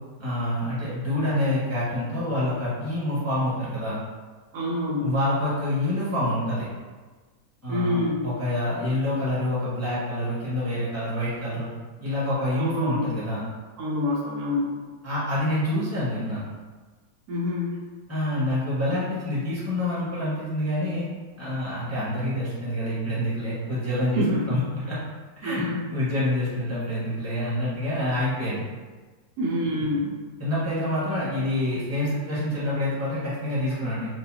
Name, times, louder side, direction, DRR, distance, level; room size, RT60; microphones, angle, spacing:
voice 1, 0.2-4.0 5.0-6.7 7.6-11.7 12.0-13.4 15.0-16.4 18.1-21.1 21.4-25.0 25.4-28.6 30.4-34.1, left 1 dB, 10° right, -10 dB, 1.2 m, -27 dB
voice 2, 4.5-5.0 7.7-8.2 12.6-13.0 13.8-14.7 17.3-17.8 24.1-24.6 25.4-25.9 29.4-30.1, left 1 dB, 80° right, -3 dB, 1.2 m, -26 dB
4.6 x 2.3 x 2.8 m, 1.4 s
omnidirectional pair, 1.6 m